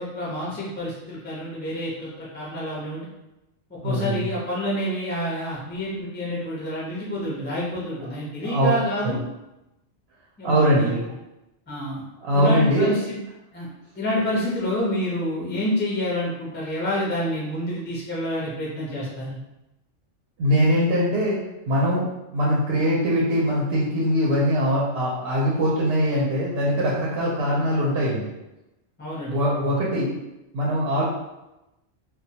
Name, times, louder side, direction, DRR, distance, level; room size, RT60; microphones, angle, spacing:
voice 1, 0.0-3.1 3.8-9.2 10.4-11.0 11.7-12.0 12.3-13.2 13.5-13.7 14.0-19.4 29.0-29.6, equal, 15° left, -6 dB, 0.4 m, -28 dB
voice 2, 3.8-4.3 8.4-8.8 9.0-9.2 10.4-11.0 12.2-12.9 20.4-21.4 21.7-22.1 22.3-28.3 29.3-30.1 30.5-31.0, equal, 65° right, -5 dB, 0.8 m, -22 dB
2.2 x 2.1 x 2.7 m, 0.95 s
omnidirectional pair, 1.2 m